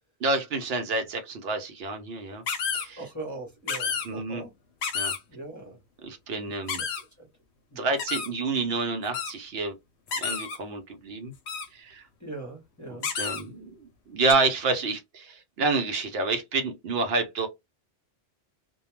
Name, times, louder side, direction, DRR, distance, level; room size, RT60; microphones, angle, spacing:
voice 1, 0.2-2.4 2.7-3.0 4.1-4.4 4.9-5.1 6.0-6.8 7.8-9.7 10.2-11.3 11.7-12.1 13.1-17.5, right 3 dB, 70° right, 0.8 m, -28 dB
sound 1, 2.5-2.8 3.7-4.1 4.8-5.2 6.7-7.0 8.0-8.3 9.1-9.3 10.1-10.6 11.5-11.6 13.0-13.4 14.3-14.4, left 6 dB, 80° left, 0.9 m, -30 dB
voice 2, 3.0-4.5 5.3-5.8 6.5-6.9 7.2-7.3 7.7-7.9 12.2-13.1, right 2 dB, 20° left, 0.7 m, -40 dB
2.2 x 2.2 x 3.0 m
omnidirectional pair, 1.1 m